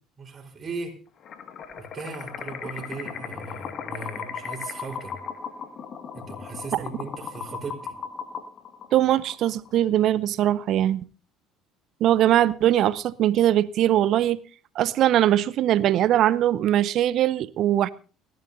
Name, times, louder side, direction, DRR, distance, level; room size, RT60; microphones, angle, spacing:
voice 1, 0.2-0.9 1.8-5.1 6.1-7.9, right 3 dB, 35° right, 4.1 m, -37 dB
sound 1, 1.2-9.7, left 6 dB, 45° left, 1.8 m, -37 dB
voice 2, 8.9-11.1 12.0-14.4 14.7-17.9, right 12 dB, 55° right, 0.7 m, -21 dB
29.5 x 11.0 x 2.6 m
figure-of-eight pair, 60°, 0 cm